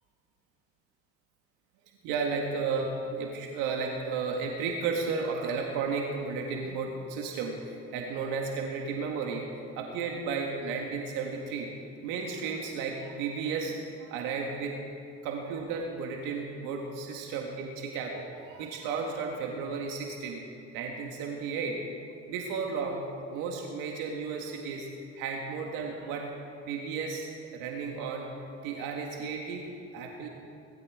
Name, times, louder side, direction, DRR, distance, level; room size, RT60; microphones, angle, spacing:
voice 1, 2.0-9.5 9.7-14.7 15.2-20.4 20.7-21.8 22.3-24.9 25.2-26.3 26.6-28.3 28.6-29.6 29.9-30.3, right 5 dB, 85° right, 1 dB, 1.8 m, -33 dB
20.0 x 13.0 x 4.9 m, 2.5 s
supercardioid pair, 90°, 32 cm